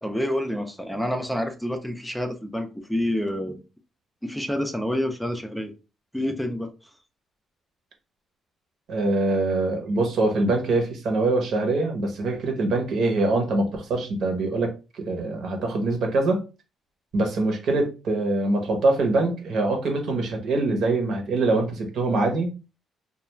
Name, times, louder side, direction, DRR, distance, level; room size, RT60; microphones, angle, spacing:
voice 1, 0.0-3.6 4.2-5.7 6.1-6.9, left 1 dB, ahead, 0.4 m, -28 dB
voice 2, 8.9-16.4 17.1-22.5, right 2 dB, 70° right, 0.8 m, -24 dB
2.3 x 2.3 x 3.0 m
cardioid pair, 90°, 0 cm